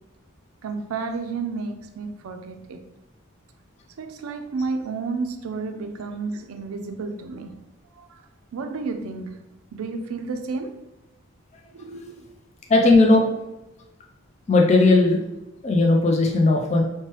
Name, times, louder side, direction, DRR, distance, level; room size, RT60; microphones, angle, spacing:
voice 1, 0.6-2.8 4.0-7.6 8.0-8.2 8.5-9.4 9.7-10.8 11.7-12.3, right 4 dB, 85° right, 6 dB, 0.4 m, -31 dB
voice 2, 12.7-13.2 14.5-15.2 15.6-16.8, left 2 dB, 30° left, 0 dB, 0.3 m, -17 dB
2.9 x 2.1 x 3.1 m, 0.97 s
head